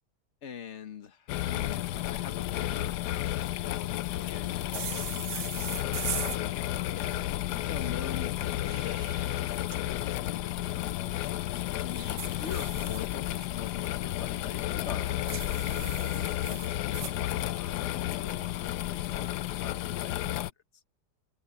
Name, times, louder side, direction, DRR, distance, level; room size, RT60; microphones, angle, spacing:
voice 1, 0.4-3.3 3.6-7.2 7.7-9.0 9.3-11.1 11.8-20.5, left 7 dB, 45° left, 1.3 m, -44 dB
sound 1, 1.3-20.5, left 14 dB, 75° left, 1.1 m, -32 dB
sound 2, 4.7-6.4 8.4-9.8 11.9-13.5 15.3-17.2, right 9 dB, 85° right, 1.7 m, -39 dB
open air
omnidirectional pair, 1.8 m